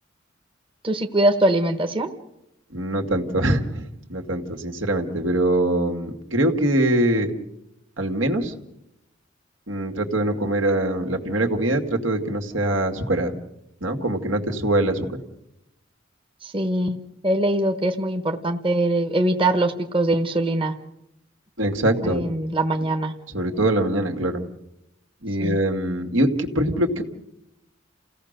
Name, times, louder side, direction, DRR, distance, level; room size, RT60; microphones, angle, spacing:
voice 1, 0.8-2.1 16.4-17.0 17.2-20.7 22.0-23.1 25.4-25.6, right 1 dB, 25° right, 6 dB, 1.1 m, -22 dB
voice 2, 2.7-7.3 8.0-8.5 9.7-13.3 13.8-15.1 21.6-22.2 23.3-24.4 25.2-27.0, right 1 dB, 85° right, 4 dB, 2.3 m, -23 dB
29.0 x 17.0 x 6.7 m, 0.86 s
head